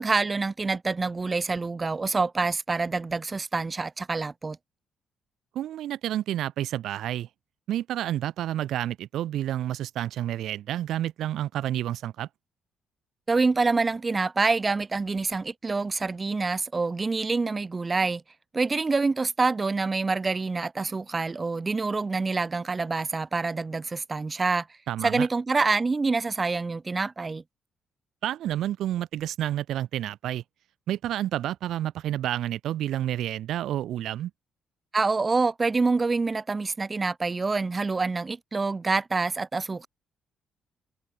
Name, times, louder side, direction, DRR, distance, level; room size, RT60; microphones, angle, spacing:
voice 1, 0.0-4.6 13.3-18.2 18.5-24.7 25.0-27.4 34.9-39.9, right 3 dB, 25° right, 1.0 m, -26 dB
voice 2, 5.5-7.3 7.7-12.3 24.9-25.3 28.2-30.4 30.9-34.3, right 12 dB, 80° right, 2.0 m, -29 dB
cardioid pair, 90°, 0 cm